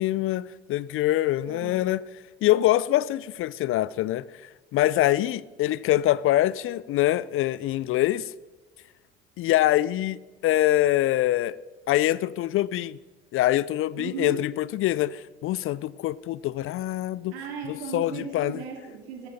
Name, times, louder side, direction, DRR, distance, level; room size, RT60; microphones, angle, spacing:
voice 1, 0.0-2.0 2.4-8.3 9.4-11.6 11.9-13.0 13.3-17.4 17.7-18.6, left 14 dB, 45° left, 0.4 m, -24 dB
voice 2, 14.0-14.4 17.3-19.3, right 5 dB, 75° right, 2.8 m, -36 dB
14.5 x 14.0 x 4.2 m
hypercardioid pair, 60°, 31 cm